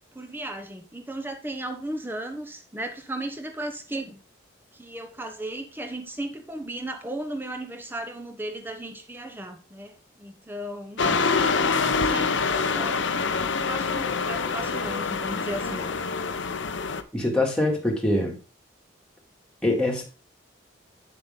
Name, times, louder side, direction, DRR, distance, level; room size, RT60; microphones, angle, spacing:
voice 1, 0.1-4.2 4.7-13.1 13.3-15.9, right 1 dB, 10° right, 1.1 m, -36 dB
sound 1, 11.0-17.0, left 4 dB, 70° left, 0.7 m, -25 dB
voice 2, 17.1-18.4 19.6-20.0, left 1 dB, 5° left, 2.3 m, -23 dB
8.1 x 7.0 x 3.8 m
head